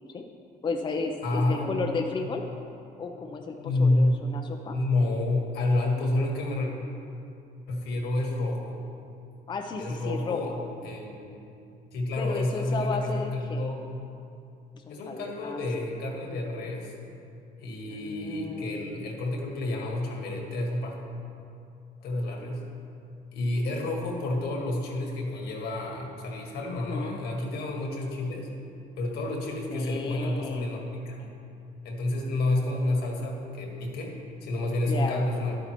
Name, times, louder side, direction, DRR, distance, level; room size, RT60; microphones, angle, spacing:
voice 1, 0.6-2.4 3.0-4.8 9.5-10.5 12.2-13.7 14.7-15.6 18.0-18.8 26.7-27.2 29.7-30.7 34.9-35.2, left 4 dB, 25° left, 3 dB, 0.6 m, -33 dB
voice 2, 1.2-2.0 3.6-4.2 4.7-6.7 7.7-8.8 9.8-10.5 10.8-11.4 11.9-13.8 14.9-16.9 17.6-21.0 22.0-22.6 23.3-28.5 29.0-31.4 31.8-35.6, left 2 dB, 75° left, 1 dB, 1.6 m, -29 dB
11.0 x 9.0 x 3.0 m, 2.6 s
cardioid pair, 110°, 17 cm